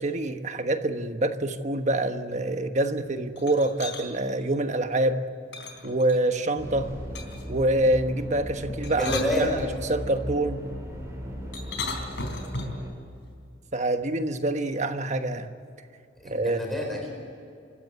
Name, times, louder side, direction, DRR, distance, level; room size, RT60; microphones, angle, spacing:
voice 1, 0.0-5.2 5.8-6.9 7.5-9.1 9.4-10.7 13.7-15.5 16.2-16.6, right 1 dB, 40° right, 7 dB, 1.3 m, -26 dB
sound 1, 3.4-4.1 5.5-6.4 7.1-7.5 8.7-10.0 11.5-12.9, left 3 dB, 65° left, 3.8 m, -36 dB
sound 2, 6.6-12.9, equal, 15° right, 5.7 m, -37 dB
voice 2, 9.0-9.5 16.2-17.1, equal, ahead, 0 dB, 4.6 m, -28 dB
26.0 x 15.0 x 8.4 m, 2.4 s
head